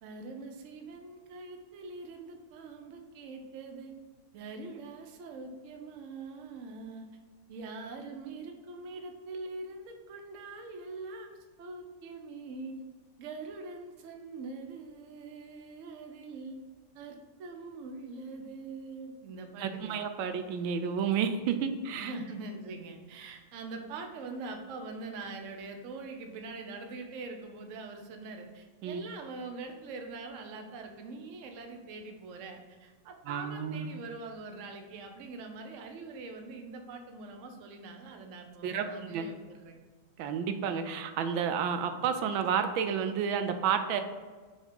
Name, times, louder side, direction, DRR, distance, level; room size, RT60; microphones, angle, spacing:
voice 1, 0.0-3.9 4.3-7.1 7.5-12.8 13.2-16.6 16.9-20.0 21.5-39.8, right 3 dB, 60° right, 4 dB, 0.8 m, -43 dB
voice 2, 19.6-22.1 28.8-29.0 33.3-34.0 38.6-39.3 40.2-44.0, right 7 dB, 90° right, 8 dB, 1.4 m, -31 dB
5.2 x 3.7 x 5.1 m, 1.4 s
omnidirectional pair, 2.1 m